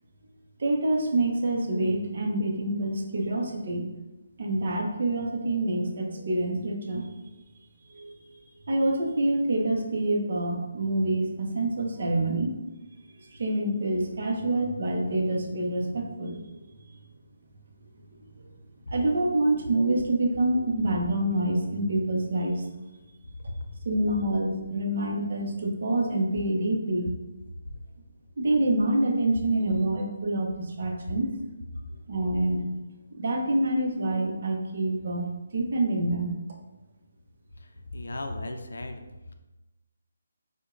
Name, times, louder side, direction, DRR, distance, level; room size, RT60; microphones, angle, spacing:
voice 1, 0.6-3.8 4.4-7.1 7.9-8.1 8.7-12.6 13.3-16.4 18.9-22.6 23.9-27.1 28.4-31.3 32.1-32.6 33.2-35.3 35.5-36.3, right 1 dB, 40° right, 1 dB, 0.6 m, -26 dB
voice 2, 37.6-39.0, left 2 dB, 85° left, 6 dB, 0.4 m, -36 dB
4.7 x 2.1 x 2.4 m, 1.1 s
hypercardioid pair, 175°, 0 cm